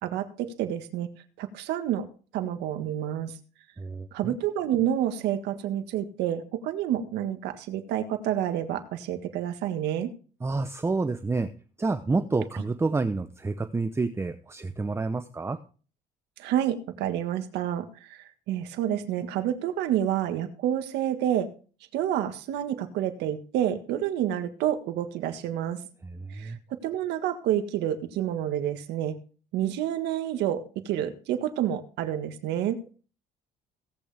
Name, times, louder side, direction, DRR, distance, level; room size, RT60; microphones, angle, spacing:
voice 1, 0.0-1.1 1.4-2.1 2.3-3.3 4.1-10.1 16.4-21.5 21.9-25.8 26.3-29.2 29.5-32.8, right 11 dB, 85° right, 7 dB, 1.7 m, -29 dB
voice 2, 3.8-4.4 10.4-11.5 11.8-15.6 26.0-26.6, right 3 dB, 15° right, 9 dB, 0.7 m, -29 dB
17.5 x 8.5 x 3.5 m, 0.39 s
cardioid pair, 110°, 17 cm